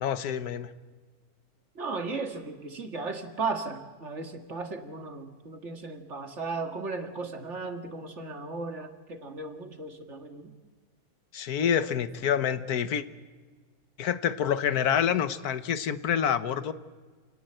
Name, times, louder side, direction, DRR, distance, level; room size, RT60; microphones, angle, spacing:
voice 1, 0.0-0.7 11.3-13.0 14.0-16.7, left 8 dB, 85° left, 12 dB, 1.5 m, -27 dB
voice 2, 1.8-10.5, right 3 dB, 50° right, 5 dB, 2.1 m, -36 dB
28.5 x 18.5 x 7.9 m, 1.5 s
omnidirectional pair, 1.6 m